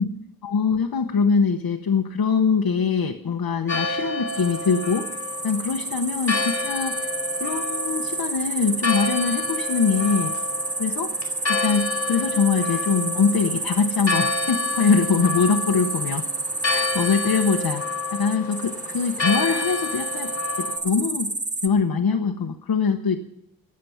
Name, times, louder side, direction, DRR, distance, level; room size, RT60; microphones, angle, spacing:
voice 1, 0.4-5.1 5.4-7.0 7.4-10.3 10.8-11.1 11.5-16.2 16.7-17.8 18.1-20.3 20.6-21.3 21.6-23.2, left 5 dB, 85° left, 4 dB, 1.0 m, -23 dB
Church bell, 3.7-20.8, left 4 dB, 40° left, 4.3 m, -30 dB
sound 1, 4.3-21.7, right 3 dB, 20° right, 0.7 m, -30 dB
17.0 x 7.6 x 9.3 m, 0.83 s
wide cardioid pair, 105°, 35 cm